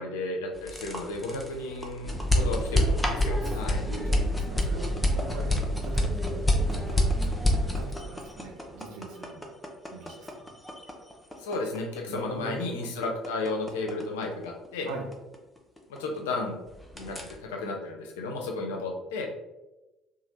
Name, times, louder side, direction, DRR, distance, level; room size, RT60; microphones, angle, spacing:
voice 1, 0.0-3.8 11.4-14.9 16.0-16.6 16.9-19.3, left 2 dB, 70° left, 1 dB, 0.5 m, -33 dB
sound 1, 0.5-16.4 16.7-17.3, left 1 dB, 5° left, 0.6 m, -28 dB
voice 2, 3.4-7.4 7.8-9.5 9.9-10.5 12.1-12.7 14.8-15.1, right 3 dB, 60° right, 2 dB, 0.6 m, -42 dB
2.8 x 2.2 x 3.1 m, 1.0 s
figure-of-eight pair, 55°, 0 cm